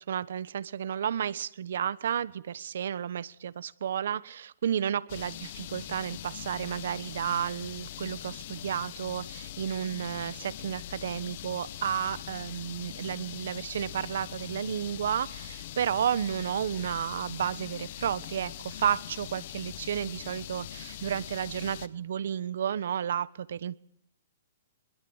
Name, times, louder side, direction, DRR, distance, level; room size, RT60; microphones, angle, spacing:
voice 1, 0.0-23.8, right 9 dB, 65° right, 18 dB, 1.2 m, -32 dB
sound 1, 5.1-21.9, left 13 dB, 45° left, 1.3 m, -42 dB
24.5 x 22.0 x 8.1 m, 0.66 s
hypercardioid pair, 165°, 0 cm